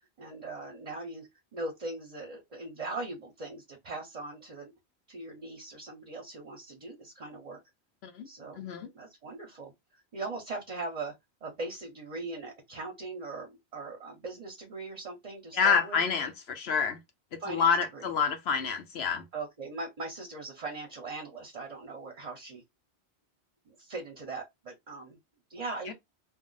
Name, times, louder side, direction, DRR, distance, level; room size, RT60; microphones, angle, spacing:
voice 1, 0.2-4.7 5.1-7.6 8.2-8.6 8.9-9.7 10.1-11.1 11.4-16.0 17.4-18.0 19.3-22.6 23.7-25.2 25.5-25.9, right 3 dB, 40° right, 0.8 m, -40 dB
voice 2, 8.5-8.9 15.5-17.0 17.3-19.3 25.9-26.0, left 6 dB, 70° left, 0.9 m, -28 dB
2.5 x 2.0 x 3.8 m
omnidirectional pair, 1.1 m